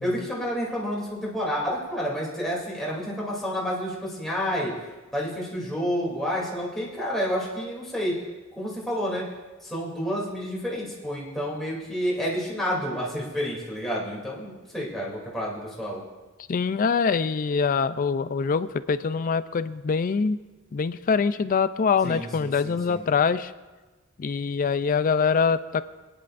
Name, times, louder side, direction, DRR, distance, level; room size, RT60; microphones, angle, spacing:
voice 1, 0.0-4.7 5.1-8.2 8.6-9.2 9.6-16.0 22.0-23.0, equal, ahead, -6 dB, 2.8 m, -29 dB
voice 2, 16.5-20.4 20.7-23.5 24.2-25.8, left 5 dB, 40° left, 14 dB, 0.4 m, -24 dB
22.5 x 10.0 x 2.5 m, 1.2 s
head